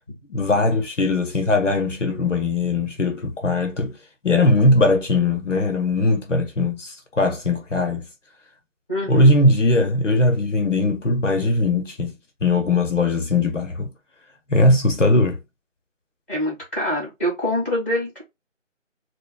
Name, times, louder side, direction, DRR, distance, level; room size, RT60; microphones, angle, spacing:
voice 1, 0.3-4.0 4.2-8.1 9.1-12.1 12.4-13.9 14.5-15.4, left 2 dB, 70° left, 0.8 m, -20 dB
voice 2, 8.9-9.4 16.3-18.2, left 1 dB, 10° left, 1.5 m, -25 dB
6.6 x 2.2 x 2.3 m
figure-of-eight pair, 170°, 38 cm